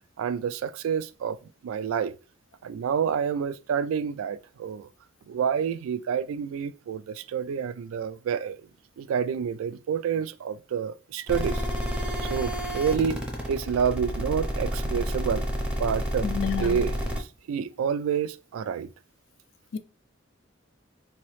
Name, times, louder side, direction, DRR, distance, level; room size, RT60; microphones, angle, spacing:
voice 1, 0.2-1.4 1.6-2.1 2.6-4.9 5.3-8.6 9.0-11.6 12.2-13.2 13.5-15.5 15.8-16.3 16.6-18.9, right 7 dB, 90° right, 0.3 m, -28 dB
sound 1, 11.3-17.2, equal, 5° right, 0.5 m, -29 dB
voice 2, 16.2-16.8 19.7-19.8, left 7 dB, 65° left, 0.4 m, -29 dB
3.9 x 2.9 x 3.1 m
head